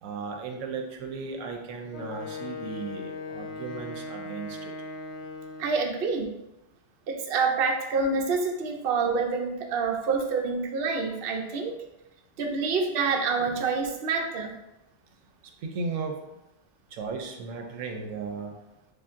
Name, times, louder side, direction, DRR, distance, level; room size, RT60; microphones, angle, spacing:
voice 1, 0.0-4.7 15.6-16.2 16.9-18.5, right 4 dB, 80° right, 4 dB, 1.0 m, -35 dB
Wind instrument woodwind instrument, 1.9-5.9, left 3 dB, 60° left, 0.9 m, -39 dB
voice 2, 5.6-6.3 7.1-11.7 12.4-14.5, right 4 dB, 60° right, 2 dB, 0.7 m, -27 dB
7.0 x 2.5 x 2.4 m, 0.92 s
omnidirectional pair, 1.4 m